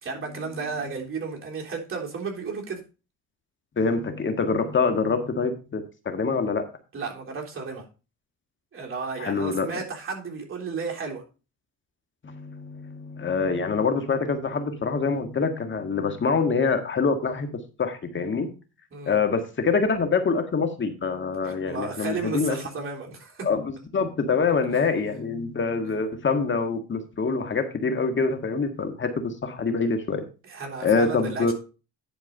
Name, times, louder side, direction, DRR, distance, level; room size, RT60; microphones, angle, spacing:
voice 1, 0.0-2.8 6.9-7.8 8.7-11.2 18.9-19.2 21.4-23.5 30.4-31.5, right 4 dB, 45° right, -1 dB, 3.5 m, -33 dB
voice 2, 3.8-6.6 9.2-9.8 12.2-17.5 17.8-18.5 19.1-22.6 23.4-30.2 30.8-31.5, left 4 dB, 40° left, 6 dB, 1.6 m, -25 dB
10.5 x 4.7 x 5.3 m, 0.32 s
cardioid pair, 90°, 30 cm